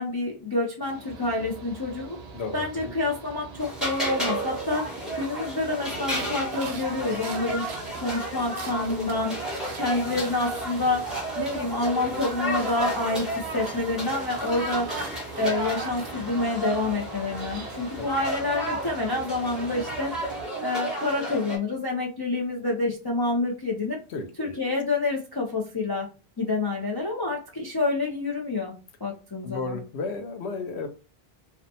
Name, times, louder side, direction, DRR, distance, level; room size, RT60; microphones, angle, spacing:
voice 1, 0.0-2.2 2.5-7.7 8.0-9.3 9.7-11.1 11.4-14.9 15.4-20.1 20.6-24.0 24.4-26.1 26.4-28.7 29.0-29.8, left 2 dB, 35° left, -1 dB, 0.4 m, -28 dB
Mechanical fan, 0.8-20.4, right 5 dB, 50° right, 0.5 m, -44 dB
voice 2, 2.3-2.9 17.9-18.1 24.1-24.7 29.4-30.9, left 3 dB, 85° left, 6 dB, 0.9 m, -33 dB
sound 1, 3.6-21.6, right 1 dB, ahead, 1.0 m, -32 dB
sound 2, 5.9-11.1 11.4-16.1, right 5 dB, 80° right, 0.8 m, -44 dB
2.7 x 2.1 x 2.6 m, 0.31 s
omnidirectional pair, 1.1 m